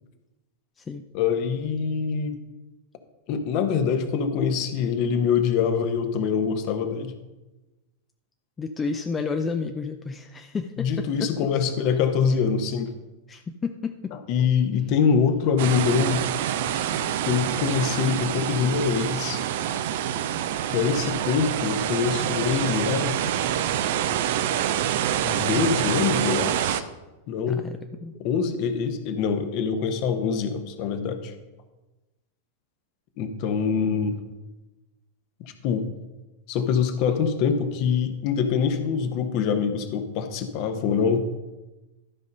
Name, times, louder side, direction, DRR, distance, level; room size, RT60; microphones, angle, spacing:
voice 1, 1.1-2.4 3.3-7.1 10.8-12.9 14.1-16.3 17.3-19.4 20.7-23.2 25.2-26.9 27.3-27.6 28.2-31.3 33.2-34.2 35.4-35.9 36.5-41.2, left 6 dB, 45° left, 8 dB, 1.0 m, -24 dB
voice 2, 8.6-10.9 11.2-11.3 13.3-14.1 27.5-28.1, left 4 dB, 20° left, 6 dB, 0.5 m, -31 dB
sound 1, 15.6-26.8, right 10 dB, 55° right, 0.5 m, -26 dB
12.5 x 5.3 x 5.2 m, 1.1 s
figure-of-eight pair, 90°, 0 cm